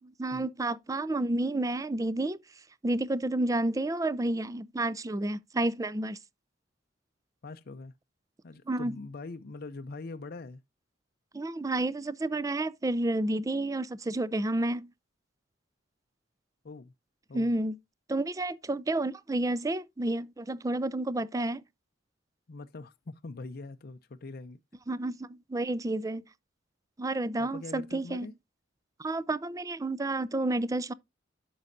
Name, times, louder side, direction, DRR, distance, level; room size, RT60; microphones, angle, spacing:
voice 1, 0.0-2.4 2.8-6.2 8.7-8.9 11.3-14.9 17.3-17.7 18.1-21.6 24.9-26.2 27.0-28.3 29.0-30.9, right 2 dB, 15° right, 0.4 m, -30 dB
voice 2, 7.4-7.9 8.4-10.6 16.6-16.9 17.3-17.5 22.5-24.6 27.4-28.3, left 3 dB, 50° left, 0.5 m, -43 dB
10.5 x 6.2 x 2.6 m
head